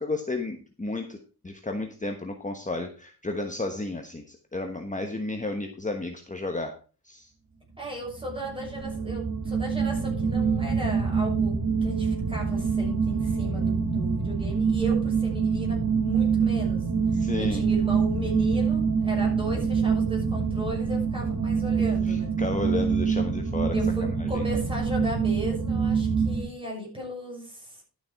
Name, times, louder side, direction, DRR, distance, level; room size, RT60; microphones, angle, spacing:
voice 1, 0.0-6.7 7.0-7.3 17.1-17.7 22.1-23.7 24.0-24.5, left 2 dB, 20° left, 4 dB, 1.2 m, -32 dB
voice 2, 7.8-16.8 17.1-22.3 23.7-27.8, equal, 15° right, -2 dB, 6.4 m, -36 dB
sound 1, 8.2-26.4, right 5 dB, 50° right, 1.8 m, -25 dB
12.0 x 7.0 x 4.7 m, 0.37 s
wide cardioid pair, 115°, 37 cm